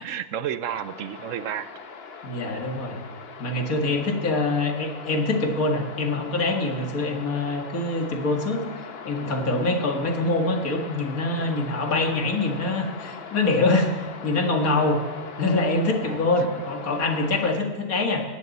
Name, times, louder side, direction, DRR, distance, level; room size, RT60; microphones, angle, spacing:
voice 1, 0.0-1.7 7.1-7.3 16.0-16.6, right 9 dB, 70° right, 13 dB, 0.9 m, -32 dB
sound 1, 0.7-17.6, left 5 dB, 50° left, 1.1 m, -40 dB
voice 2, 2.2-3.0 3.4-8.6 9.1-15.0 15.4-18.2, left 2 dB, 85° left, 2 dB, 2.3 m, -24 dB
18.5 x 14.0 x 4.1 m, 1.5 s
omnidirectional pair, 1.5 m